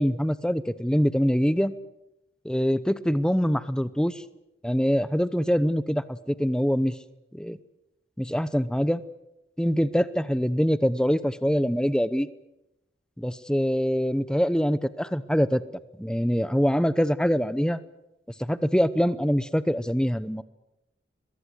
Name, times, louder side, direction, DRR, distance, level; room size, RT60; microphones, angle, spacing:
voice 1, 0.0-1.8 2.4-4.2 4.6-7.0 7.3-7.6 8.2-9.0 9.6-12.3 13.2-15.6 16.0-17.8 18.4-20.4, equal, 5° left, 14 dB, 0.8 m, -24 dB
23.0 x 21.5 x 7.9 m, 0.89 s
head